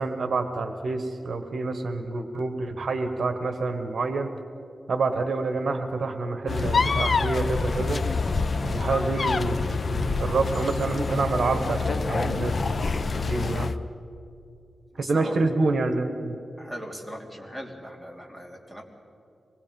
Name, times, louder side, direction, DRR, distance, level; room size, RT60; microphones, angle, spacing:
voice 1, 0.0-4.3 4.9-8.0 8.6-12.8 13.2-13.7 15.0-16.4, right 3 dB, 60° right, 7 dB, 1.5 m, -27 dB
sound 1, 6.5-13.8, left 4 dB, 45° left, 0.7 m, -26 dB
voice 2, 14.9-15.4 16.6-18.8, equal, 5° left, 0 dB, 3.0 m, -39 dB
25.5 x 21.0 x 5.4 m, 2.7 s
wide cardioid pair, 115°, 0 cm